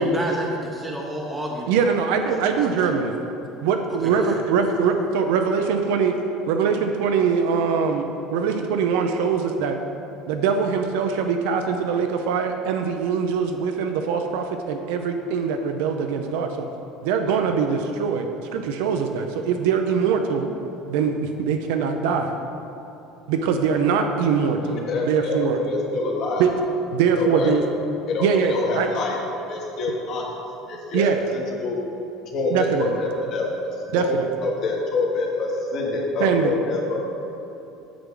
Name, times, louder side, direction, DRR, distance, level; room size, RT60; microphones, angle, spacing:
voice 1, 0.0-1.8 2.1-2.9 4.0-4.9, right 1 dB, 10° right, -2 dB, 0.7 m, -31 dB
voice 2, 1.7-3.2 3.6-6.1 6.5-9.8 10.3-16.7 17.0-18.3 18.5-20.5 20.9-22.3 23.3-25.6 26.4-26.5 26.9-27.6 28.2-28.9 30.9-31.2 32.5-32.9 33.9-34.3 36.2-36.6, right 6 dB, 85° right, 5 dB, 0.5 m, -22 dB
voice 3, 24.9-26.5 27.2-27.5 28.1-29.2 29.5-30.3 30.7-31.8 32.3-33.5 33.9-34.1 34.4-37.0, left 2 dB, 45° left, -1 dB, 1.3 m, -26 dB
8.5 x 6.0 x 3.7 m, 3.0 s
cardioid pair, 150°, 0 cm